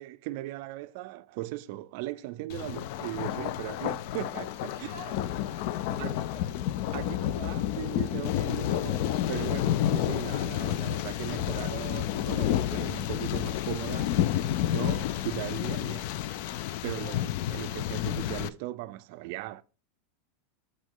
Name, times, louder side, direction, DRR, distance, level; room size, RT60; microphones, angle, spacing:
voice 1, 0.0-4.9 6.0-6.2 6.9-16.2 16.8-19.6, right 17 dB, 55° right, 0.4 m, -38 dB
Thunder, 2.5-18.5, left 12 dB, 55° left, 0.4 m, -30 dB
voice 2, 4.9-6.5 7.0-7.6 17.0-17.3, left 1 dB, 85° left, 3.6 m, -47 dB
6.4 x 5.1 x 3.7 m
supercardioid pair, 160°, 0 cm